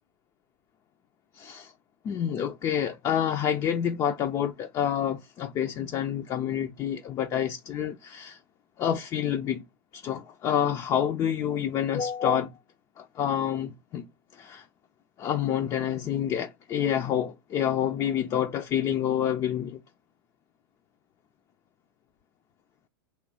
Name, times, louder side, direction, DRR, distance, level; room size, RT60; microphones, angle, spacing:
voice 1, 1.3-1.7 2.0-8.4 8.8-9.6 9.9-12.5 13.0-14.1 14.3-14.6 15.2-19.8, left 9 dB, 30° left, 0.5 m, -28 dB
3.2 x 3.1 x 4.7 m
hypercardioid pair, 110°, 13 cm